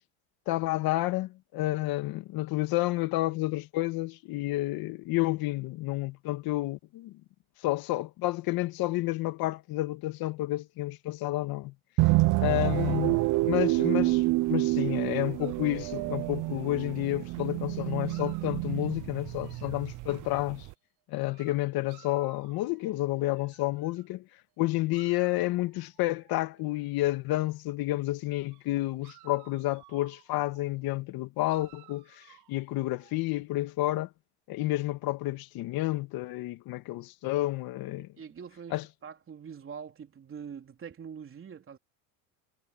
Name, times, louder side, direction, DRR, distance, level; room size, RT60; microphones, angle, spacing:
voice 1, 0.5-7.1 7.6-11.7 12.4-20.7 21.1-24.2 24.6-34.1 34.5-38.1 38.7-38.8, left 18 dB, 60° left, 1.7 m, -30 dB
sound 1, 12.0-20.7, right 21 dB, 50° right, 0.5 m, -28 dB
sound 2, 15.4-17.5 18.0-20.1 21.1-24.1 24.9-26.9 28.5-28.7 29.0-30.7 31.5-33.2, right 19 dB, 65° right, 5.7 m, -59 dB
voice 2, 38.2-41.8, right 7 dB, 30° right, 4.0 m, -44 dB
supercardioid pair, 115°, 42 cm